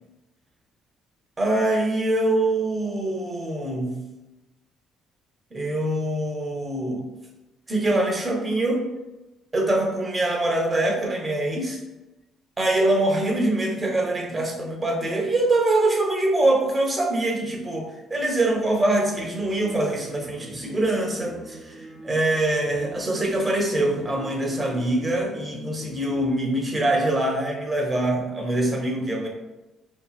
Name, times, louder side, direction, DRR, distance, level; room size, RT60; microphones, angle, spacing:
voice 1, 1.4-4.0 5.5-7.1 7.7-8.8 9.5-11.8 12.6-29.3, right 1 dB, 25° right, 0 dB, 1.1 m, -24 dB
sound 1, 19.1-26.3, right 2 dB, 50° right, 0.9 m, -44 dB
5.1 x 3.0 x 2.4 m, 1.0 s
supercardioid pair, 75°, 0 cm